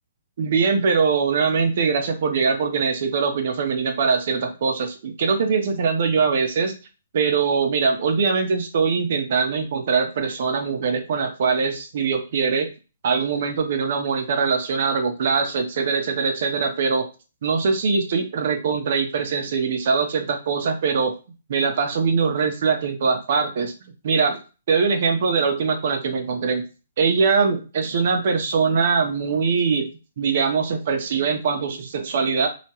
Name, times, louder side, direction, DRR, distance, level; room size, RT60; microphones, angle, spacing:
voice 1, 0.4-6.8 7.1-12.7 13.0-17.1 17.4-21.1 21.5-23.7 24.0-24.4 24.7-26.6 27.0-29.9 30.2-32.5, right 5 dB, 40° right, 5 dB, 0.5 m, -22 dB
2.8 x 2.2 x 2.8 m, 0.32 s
hypercardioid pair, 180°, 0 cm